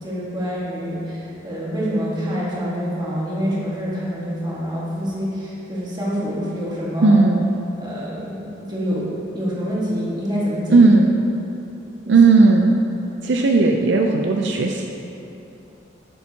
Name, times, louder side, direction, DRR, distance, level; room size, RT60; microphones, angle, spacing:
voice 1, 0.0-7.2 7.8-10.9 12.0-12.1, equal, 25° right, -7 dB, 1.6 m, -26 dB
voice 2, 7.0-7.5 10.7-11.1 12.1-12.8 13.2-14.9, right 3 dB, 70° right, 2 dB, 0.4 m, -15 dB
10.5 x 7.1 x 2.8 m, 2.9 s
head